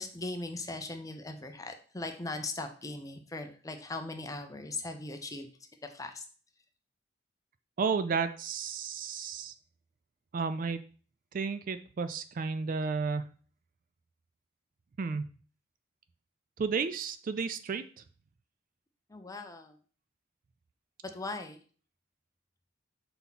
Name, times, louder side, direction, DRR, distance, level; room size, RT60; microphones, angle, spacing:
voice 1, 0.0-5.5 5.8-6.2 19.1-19.8 21.0-21.6, left 2 dB, 15° left, 6 dB, 0.6 m, -39 dB
voice 2, 7.8-9.5 10.3-10.8 11.3-13.3 15.0-15.2 16.6-17.8, right 5 dB, 45° right, 11 dB, 0.3 m, -32 dB
5.6 x 4.2 x 4.1 m, 0.41 s
head